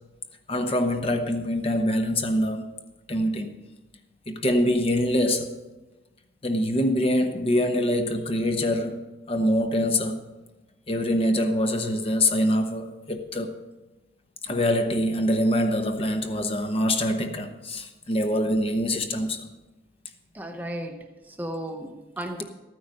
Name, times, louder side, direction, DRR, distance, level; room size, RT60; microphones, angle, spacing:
voice 1, 0.5-2.6 3.1-3.5 4.3-5.6 6.4-9.0 9.3-10.2 10.9-13.5 14.4-19.5, left 1 dB, 30° left, 0.9 m, -24 dB
voice 2, 20.3-22.4, right 1 dB, 10° right, 0.7 m, -35 dB
13.5 x 9.4 x 5.3 m
head